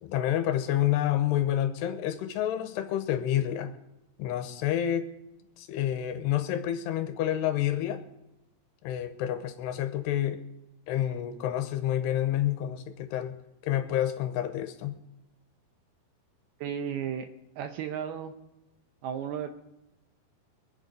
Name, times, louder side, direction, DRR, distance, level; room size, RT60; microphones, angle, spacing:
voice 1, 0.0-3.7 4.2-5.1 5.6-8.0 8.8-10.4 10.9-13.4 13.6-15.0, left 11 dB, 80° left, 9 dB, 2.8 m, -29 dB
voice 2, 16.6-17.3 17.6-18.3 19.0-19.5, right 8 dB, 75° right, 7 dB, 2.4 m, -34 dB
24.0 x 8.0 x 5.2 m, 0.94 s
omnidirectional pair, 5.1 m